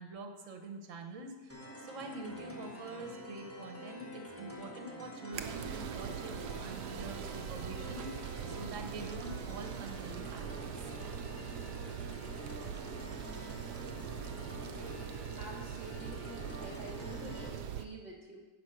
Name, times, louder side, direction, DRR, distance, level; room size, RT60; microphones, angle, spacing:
voice 1, 0.0-1.5 1.8-6.3 6.6-10.8, right 2 dB, 50° right, 4 dB, 1.4 m, -45 dB
sound 1, 1.5-17.5, left 1 dB, 10° left, 1.1 m, -47 dB
sound 2, 5.3-17.9, right 8 dB, 75° right, 1.1 m, -42 dB
voice 2, 15.4-18.4, right 2 dB, 25° right, -1 dB, 1.5 m, -48 dB
10.0 x 5.2 x 6.4 m, 1.2 s
omnidirectional pair, 1.8 m